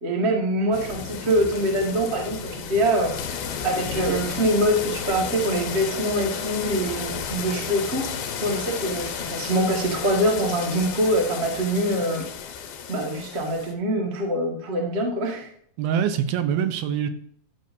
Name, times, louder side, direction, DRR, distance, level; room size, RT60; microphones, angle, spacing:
voice 1, 0.0-8.1 8.4-12.3 12.9-15.5, right 1 dB, 40° right, -1 dB, 0.9 m, -24 dB
sound 1, 0.7-13.7, left 7 dB, 75° left, 2.5 m, -32 dB
voice 2, 15.8-17.1, right 8 dB, 85° right, 9 dB, 2.7 m, -24 dB
12.0 x 6.7 x 2.7 m, 0.64 s
omnidirectional pair, 4.3 m